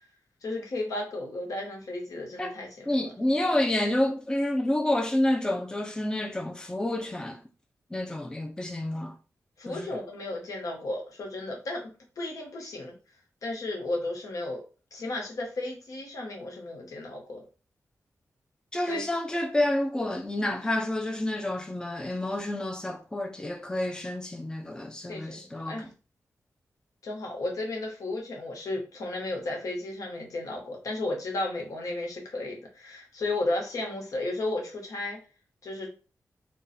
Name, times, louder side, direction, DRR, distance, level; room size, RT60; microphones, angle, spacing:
voice 1, 0.4-3.1 9.6-11.9 12.2-12.9 13.4-14.6 14.9-17.4 18.9-19.0 25.1-25.9 27.0-35.2 35.6-35.9, left 2 dB, 75° left, 1.0 m, -34 dB
voice 2, 2.9-7.4 7.9-9.1 9.7-10.0 18.7-25.8, left 1 dB, 15° left, 0.5 m, -29 dB
2.4 x 2.3 x 4.0 m
cardioid pair, 70°, 6 cm